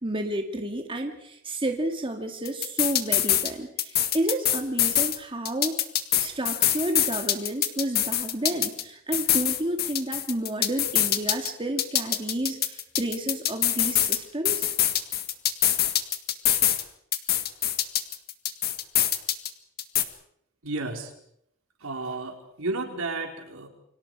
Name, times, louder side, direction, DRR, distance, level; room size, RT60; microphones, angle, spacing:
voice 1, 0.0-5.8 6.2-14.7, right 1 dB, 25° right, 4 dB, 2.2 m, -31 dB
sound 1, 2.4-3.5 3.8-5.2 5.4-8.8 9.1-11.5 11.8-14.2 14.4-16.8 17.1-19.5 19.8-20.0, left 11 dB, 50° left, 1.9 m, -24 dB
voice 2, 20.6-21.1 21.8-23.7, right 2 dB, 80° right, 3 dB, 4.5 m, -32 dB
29.5 x 25.0 x 4.9 m, 0.72 s
head